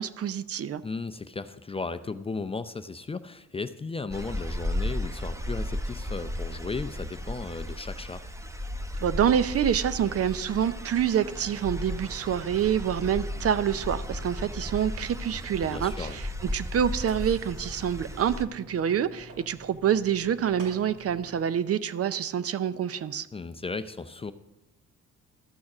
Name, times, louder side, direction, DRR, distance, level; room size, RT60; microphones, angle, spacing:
voice 1, 0.0-0.8 9.0-23.3, right 9 dB, 50° right, 14 dB, 0.6 m, -27 dB
voice 2, 0.8-8.2 15.6-16.2 23.3-24.3, left 4 dB, 20° left, 10 dB, 0.5 m, -35 dB
sound 1, 4.1-18.4, left 1 dB, 10° right, 1.0 m, -35 dB
Mechanisms, 10.8-21.5, right 1 dB, 75° right, 3.6 m, -50 dB
13.0 x 6.3 x 6.0 m, 1.1 s
cardioid pair, 90°, 30 cm